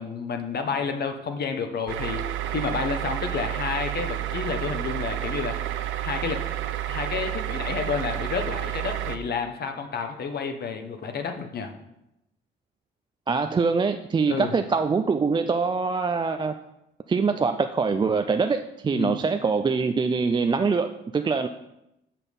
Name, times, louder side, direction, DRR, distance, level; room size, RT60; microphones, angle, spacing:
voice 1, 0.0-2.2 2.5-5.6 6.0-6.4 6.9-11.7 14.3-14.5 18.9-19.2, left 5 dB, 55° left, 6 dB, 1.1 m, -30 dB
sound 1, 1.9-9.2, right 12 dB, 80° right, 0.6 m, -30 dB
voice 2, 13.3-16.5 17.1-21.5, right 4 dB, 25° right, 7 dB, 0.4 m, -24 dB
6.3 x 5.8 x 5.3 m, 0.87 s
cardioid pair, 90°, 20 cm